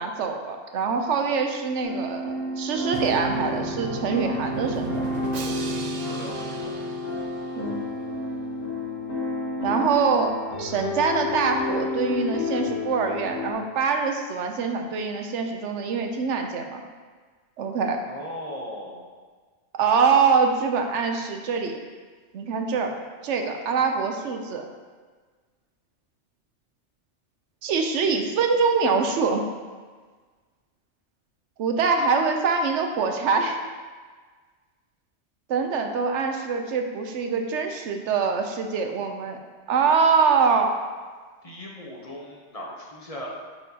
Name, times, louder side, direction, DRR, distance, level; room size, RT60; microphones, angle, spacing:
voice 1, 0.0-5.1 7.6-7.9 9.6-10.3 10.6-16.8 17.6-18.0 19.8-21.8 22.3-22.9 23.2-24.6 27.6-29.4 31.6-33.6 35.5-39.4 39.7-40.7, right 5 dB, 75° right, 4 dB, 0.9 m, -24 dB
sound 1, 1.8-13.5, left 2 dB, 85° left, 1.6 m, -30 dB
Drum, 2.9-7.8, right 5 dB, 60° right, 0.4 m, -36 dB
voice 2, 5.9-6.7 18.0-19.0 41.4-43.3, left 1 dB, 35° left, -3 dB, 0.8 m, -38 dB
8.9 x 4.4 x 2.8 m, 1.5 s
omnidirectional pair, 1.2 m